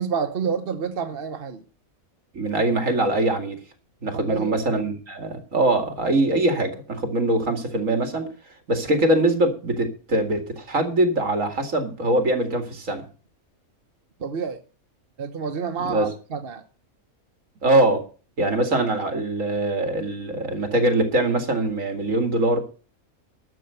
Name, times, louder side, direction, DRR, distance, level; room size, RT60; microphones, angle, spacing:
voice 1, 0.0-1.6 4.1-4.6 14.2-14.6 15.2-16.6, right 6 dB, 45° right, 1.1 m, -28 dB
voice 2, 2.3-3.6 4.0-8.3 8.7-13.0 15.9-16.1 17.6-18.0 18.4-22.6, right 2 dB, 65° right, 2.6 m, -22 dB
12.5 x 6.8 x 8.0 m
omnidirectional pair, 1.5 m